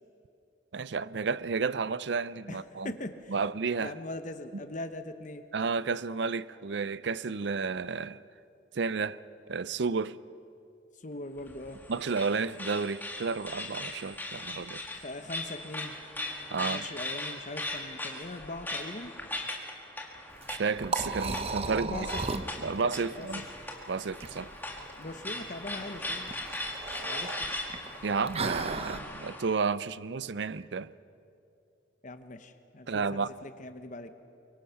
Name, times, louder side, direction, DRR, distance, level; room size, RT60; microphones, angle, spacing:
voice 1, 0.7-2.9 3.3-3.9 5.5-8.2 8.7-9.2 9.5-10.1 11.9-14.8 16.5-16.8 20.5-22.1 22.6-23.5 23.9-24.5 28.0-30.9 32.9-33.3, right 5 dB, 65° right, 0.5 m, -31 dB
voice 2, 2.8-3.3 3.8-5.5 11.0-11.8 14.9-15.9 16.6-19.1 21.7-22.2 23.1-23.3 24.9-26.3 27.0-27.5 32.0-34.1, left 2 dB, 40° left, 0.9 m, -41 dB
sound 1, 11.4-29.6, left 2 dB, 10° left, 1.7 m, -39 dB
Liquid, 20.3-29.0, right 3 dB, 30° right, 0.9 m, -37 dB
24.0 x 23.5 x 5.8 m
head